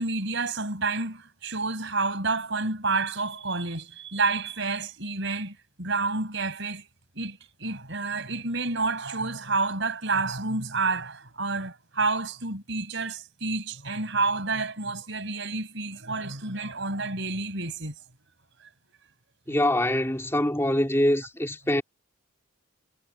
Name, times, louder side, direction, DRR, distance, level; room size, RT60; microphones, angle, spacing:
voice 1, 0.0-6.9 7.2-17.9 19.5-19.6, right 3 dB, 55° right, 6.0 m, -29 dB
voice 2, 19.5-21.8, left 1 dB, 10° left, 3.3 m, -24 dB
head